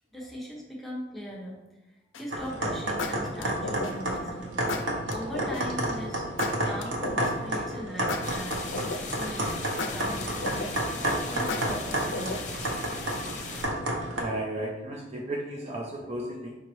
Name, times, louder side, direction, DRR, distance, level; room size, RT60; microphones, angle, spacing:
voice 1, 0.1-1.6 1.9-6.3 6.6-8.6 9.1-9.6 9.8-11.0 11.3-12.4, equal, ahead, -4 dB, 0.9 m, -39 dB
sound 1, 2.1-2.4 3.0-4.1 4.7-5.6 6.4-7.5 8.1-9.2 9.8-10.9 11.5-12.6, left 3 dB, 80° left, 0.4 m, -34 dB
sound 2, 2.3-14.2, right 1 dB, 85° right, 0.8 m, -31 dB
sound 3, 8.2-13.7, left 3 dB, 40° left, 0.7 m, -38 dB
voice 2, 14.1-16.6, right 1 dB, 35° right, -1 dB, 0.5 m, -34 dB
5.2 x 2.8 x 3.0 m, 1.0 s
head